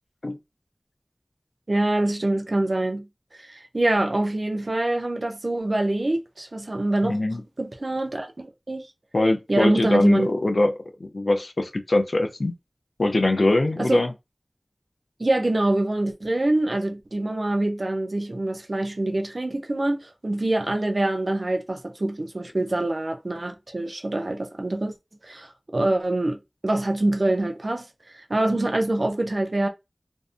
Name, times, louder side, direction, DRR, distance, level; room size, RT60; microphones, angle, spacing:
voice 1, 1.7-3.1 3.3-7.2 7.6-8.8 9.5-10.3 13.8-14.0 15.2-24.9 25.2-27.8 28.1-29.7, right 1 dB, 70° right, 0.5 m, -25 dB
voice 2, 7.0-7.4 9.1-10.7 11.0-12.5 13.0-14.1, left 2 dB, 85° left, 0.5 m, -22 dB
2.6 x 2.1 x 2.4 m
wide cardioid pair, 45°, 0 cm